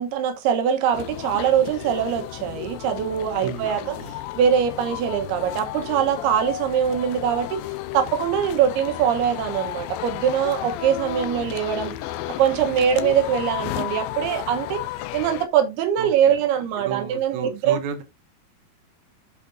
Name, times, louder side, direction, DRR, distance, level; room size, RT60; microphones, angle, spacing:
voice 1, 0.0-3.9 4.4-7.6 7.9-12.0 12.4-14.8 15.1-17.8, right 8 dB, 80° right, 3.0 m, -22 dB
sound 1, 0.9-15.5, left 14 dB, 80° left, 2.2 m, -33 dB
voice 2, 3.4-4.1 16.0-16.4 16.8-18.0, right 6 dB, 60° right, 2.4 m, -34 dB
13.0 x 4.8 x 2.6 m
omnidirectional pair, 4.5 m